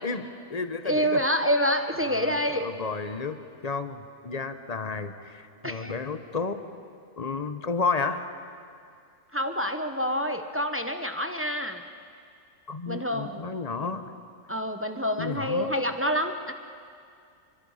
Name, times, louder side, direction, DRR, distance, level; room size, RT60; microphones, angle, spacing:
voice 1, 0.0-1.2 2.0-6.6 7.2-8.3 12.7-14.1 15.2-15.7, left 4 dB, 30° left, 9 dB, 0.9 m, -32 dB
voice 2, 0.8-2.7 5.6-5.9 9.3-11.8 12.9-13.4 14.5-16.5, equal, 10° right, 6 dB, 0.7 m, -27 dB
28.5 x 24.0 x 5.6 m, 2.3 s
omnidirectional pair, 1.6 m